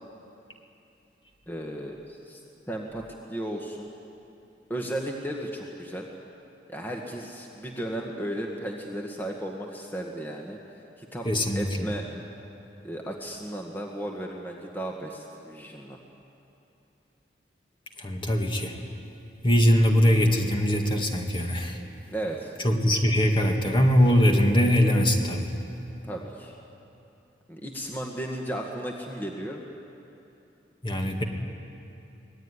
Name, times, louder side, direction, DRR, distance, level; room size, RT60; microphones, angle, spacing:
voice 1, 1.5-2.4 2.7-3.9 4.7-6.1 6.7-10.6 11.0-11.3 11.6-12.1 12.8-16.0 22.1-22.5 26.1-26.6 27.5-29.6, right 1 dB, 10° left, 0 dB, 1.7 m, -35 dB
voice 2, 11.3-11.9 18.0-18.7 19.4-21.8 22.6-25.5 30.8-31.2, equal, 30° left, 2 dB, 2.1 m, -22 dB
24.5 x 19.0 x 9.8 m, 2.8 s
head